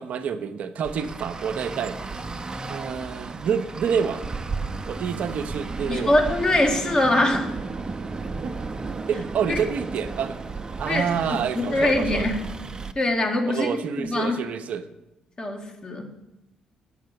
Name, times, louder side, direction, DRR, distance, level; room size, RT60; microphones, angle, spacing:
voice 1, 0.0-2.0 2.7-4.2 4.9-6.1 8.4-8.5 9.1-10.4 10.8-12.3 13.5-14.9, right 7 dB, 65° right, 9 dB, 0.7 m, -28 dB
Traffic noise roadway noise, 0.8-12.9, right 3 dB, 30° right, 0.8 m, -34 dB
voice 2, 5.9-7.5 9.5-9.6 10.8-12.4 13.0-13.7 14.0-14.4 15.4-16.1, left 1 dB, 35° left, 3 dB, 2.2 m, -23 dB
9.3 x 6.5 x 6.7 m, 0.92 s
hypercardioid pair, 50°, 3 cm